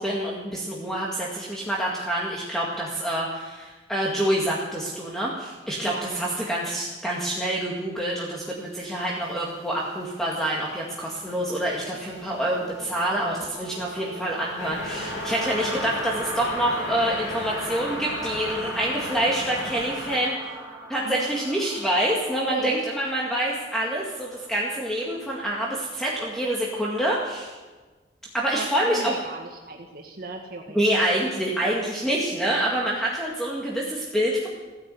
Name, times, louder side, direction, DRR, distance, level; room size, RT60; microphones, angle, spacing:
voice 1, 0.0-20.4 20.9-27.5 28.3-29.1 30.7-34.5, right 1 dB, 5° left, -4 dB, 2.0 m, -26 dB
voice 2, 5.8-6.3 21.0-21.4 22.5-22.7 28.5-31.1, right 2 dB, 55° right, 1 dB, 1.7 m, -37 dB
sound 1, 8.6-26.4, right 2 dB, 20° right, 3.0 m, -40 dB
sound 2, 14.6-20.2, left 2 dB, 85° left, 3.2 m, -35 dB
16.5 x 11.0 x 7.8 m, 1.3 s
head